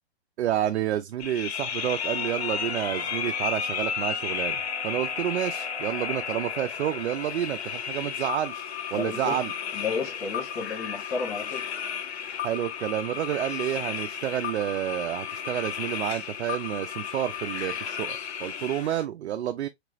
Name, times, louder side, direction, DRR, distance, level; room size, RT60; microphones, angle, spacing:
voice 1, 0.4-8.6 8.9-9.5 12.4-19.7, right 11 dB, 85° right, 0.5 m, -29 dB
sound 1, 1.2-19.0, left 8 dB, 80° left, 0.7 m, -33 dB
sound 2, 2.1-6.8, right 8 dB, 10° right, 0.8 m, -45 dB
voice 2, 8.9-9.4 9.7-11.7, left 4 dB, 40° left, 1.5 m, -32 dB
3.3 x 3.0 x 2.5 m
hypercardioid pair, 145°, 32 cm